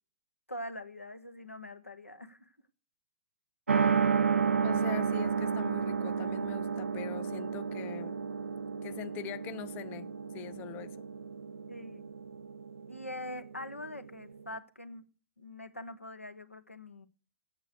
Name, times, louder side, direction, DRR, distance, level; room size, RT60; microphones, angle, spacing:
voice 1, 0.5-2.5 11.7-12.1 12.9-15.0 15.4-17.1, left 1 dB, 90° left, 1.1 m, -43 dB
sound 1, 3.7-14.5, right 6 dB, 80° right, 0.5 m, -32 dB
voice 2, 4.6-8.2 8.8-11.0, left 12 dB, 25° left, 0.5 m, -43 dB
8.8 x 6.8 x 7.9 m
figure-of-eight pair, 110°, 7 cm